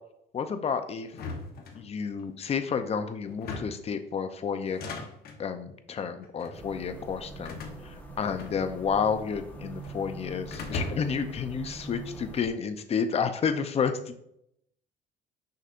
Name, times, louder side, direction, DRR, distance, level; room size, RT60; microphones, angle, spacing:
voice 1, 0.3-1.1 1.7-4.8 5.4-14.1, left 6 dB, 35° left, 9 dB, 0.6 m, -30 dB
sound 1, 1.1-2.3 3.3-3.9 4.6-5.4 6.2-6.6 7.4-9.0 9.2-10.0 10.5-11.3, left 3 dB, 65° left, 1.0 m, -38 dB
sound 2, 6.5-12.5, right 3 dB, 10° left, 1.3 m, -43 dB
6.5 x 5.6 x 2.5 m, 0.75 s
cardioid pair, 110°, 17 cm